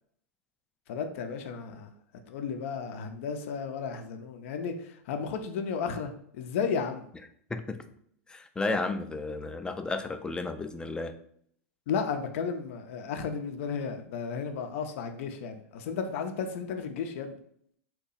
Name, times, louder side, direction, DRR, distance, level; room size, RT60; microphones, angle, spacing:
voice 1, 0.9-1.9 2.3-7.1 11.9-17.3, left 6 dB, 65° left, 6 dB, 0.5 m, -33 dB
voice 2, 8.3-11.1, left 3 dB, 10° left, 8 dB, 0.3 m, -33 dB
2.8 x 2.2 x 4.0 m, 0.66 s
hypercardioid pair, 100°, 8 cm